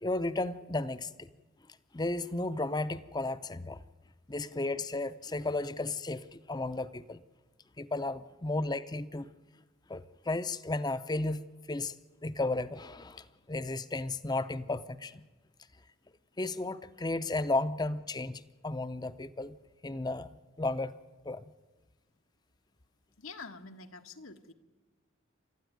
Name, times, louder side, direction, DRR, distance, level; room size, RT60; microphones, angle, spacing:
voice 1, 0.0-1.3 1.9-3.8 4.3-7.2 7.8-9.3 9.9-12.0 12.2-15.2 16.4-19.6 19.8-20.9 21.2-21.4, left 2 dB, 20° left, 13 dB, 0.6 m, -34 dB
voice 2, 23.2-24.5, left 4 dB, 85° left, 5 dB, 1.4 m, -46 dB
29.0 x 13.0 x 9.3 m, 1.3 s
head